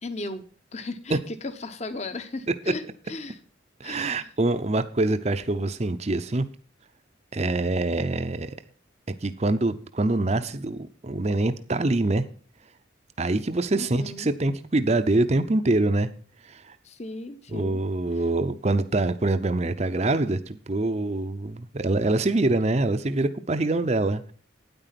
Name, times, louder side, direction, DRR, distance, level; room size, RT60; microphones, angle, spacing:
voice 1, 0.0-3.4 3.8-4.3 13.7-14.3 16.8-17.8, left 2 dB, 35° left, 0.9 m, -36 dB
voice 2, 3.8-6.5 7.3-8.6 9.1-12.3 13.2-16.1 16.4-16.8 17.5-24.3, right 2 dB, 35° right, 0.6 m, -25 dB
9.4 x 9.0 x 5.8 m
head